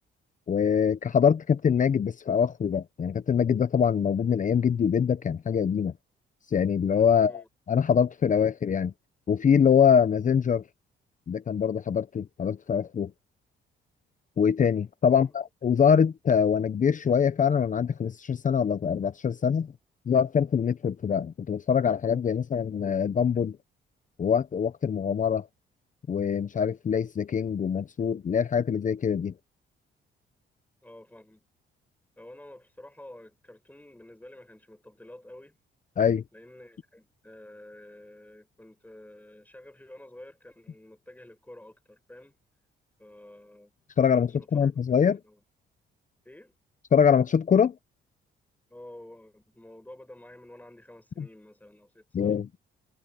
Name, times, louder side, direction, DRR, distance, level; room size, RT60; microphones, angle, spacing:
voice 1, 0.5-5.9 6.5-8.9 9.3-10.6 11.3-13.1 14.4-19.7 20.1-23.6 24.2-25.5 26.1-29.3 36.0-36.2 44.0-45.2 46.9-47.7 51.2-51.3 52.1-52.5, left 7 dB, 40° left, 0.9 m, -24 dB
voice 2, 7.1-7.5 15.1-15.3 30.8-31.4 32.2-35.6 36.3-42.4 43.0-43.7 44.1-45.4 46.2-46.6 48.7-52.4, left 1 dB, 10° left, 6.0 m, -49 dB
cardioid pair, 90°, 20 cm